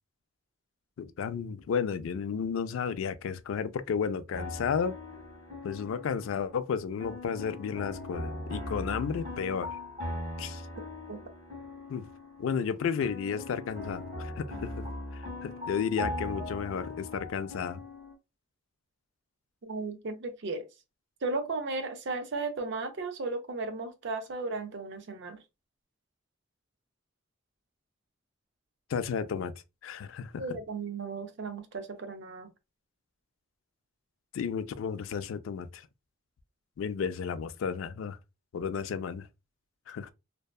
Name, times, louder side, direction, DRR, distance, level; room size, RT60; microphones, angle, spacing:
voice 1, 1.0-4.9 5.6-9.7 10.4-10.6 11.9-12.0 12.4-14.8 15.1-17.8 28.9-29.5 29.8-30.4 34.3-35.9 36.8-38.2 38.5-39.3 39.9-40.1, left 6 dB, 75° left, 0.3 m, -33 dB
sound 1, 4.3-6.7 7.0-12.7 13.0-18.1, left 1 dB, 40° right, 1.3 m, -40 dB
voice 2, 19.6-20.7 21.2-25.4 30.4-32.5, right 3 dB, 60° right, 0.5 m, -35 dB
2.6 x 2.2 x 2.2 m
head